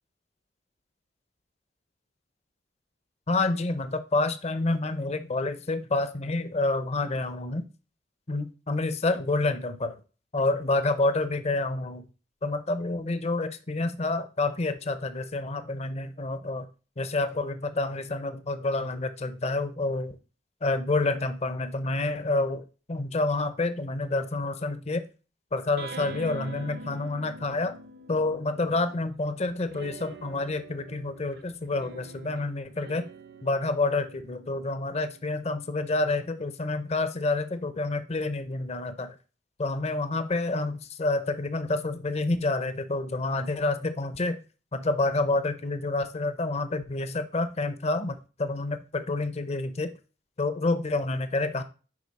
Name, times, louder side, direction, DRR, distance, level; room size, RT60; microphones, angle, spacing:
voice 1, 3.3-7.7 8.3-10.0 10.3-12.0 12.4-16.7 17.0-20.2 20.6-25.1 25.5-27.7 28.1-33.0 33.4-39.2 39.6-44.4 44.7-49.9 50.4-51.6, left 2 dB, 35° left, 11 dB, 0.7 m, -28 dB
sound 1, 25.8-29.1 29.7-36.5, right 2 dB, 65° right, 0.8 m, -46 dB
9.9 x 3.9 x 4.1 m, 0.35 s
head